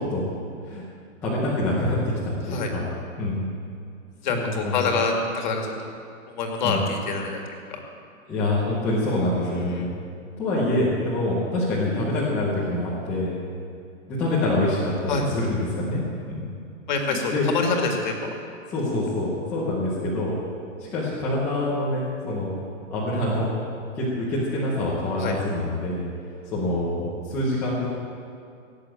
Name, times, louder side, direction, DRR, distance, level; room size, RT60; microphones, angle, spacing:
voice 1, 1.2-2.8 3.2-3.5 4.3-4.9 6.6-6.8 8.3-9.9 10.4-13.3 14.1-16.0 16.3-16.4 17.0-17.5 18.7-20.3 20.8-22.6 22.9-23.5 24.0-26.0 26.5-27.9, left 1 dB, 5° left, -9 dB, 0.7 m, -25 dB
voice 2, 4.2-6.0 6.3-7.4 9.7-9.9 15.1-15.3 16.9-18.3 25.2-25.4, left 4 dB, 35° left, 2 dB, 2.1 m, -26 dB
17.5 x 8.3 x 8.8 m, 2.4 s
hypercardioid pair, 175°, 41 cm